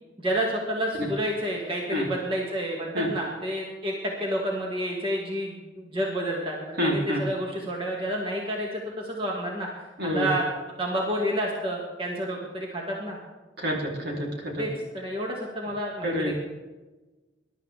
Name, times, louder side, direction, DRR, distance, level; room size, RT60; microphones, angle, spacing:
voice 1, 0.2-9.7 10.0-10.5 10.8-13.2 14.6-16.3, equal, 30° right, -2 dB, 2.3 m, -29 dB
voice 2, 6.8-7.2 10.0-10.3 13.6-14.6 16.0-16.3, equal, 60° right, -1 dB, 3.8 m, -27 dB
22.0 x 12.0 x 3.6 m, 1.2 s
head